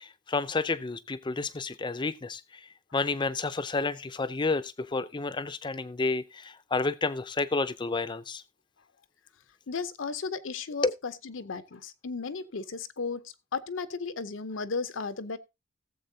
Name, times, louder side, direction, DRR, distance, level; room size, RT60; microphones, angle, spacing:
voice 1, 0.0-2.6 2.9-8.4 10.8-10.9, left 3 dB, 25° left, 0.5 m, -30 dB
voice 2, 9.7-13.2 13.5-15.4, left 4 dB, 75° left, 0.7 m, -35 dB
17.0 x 7.4 x 2.7 m
head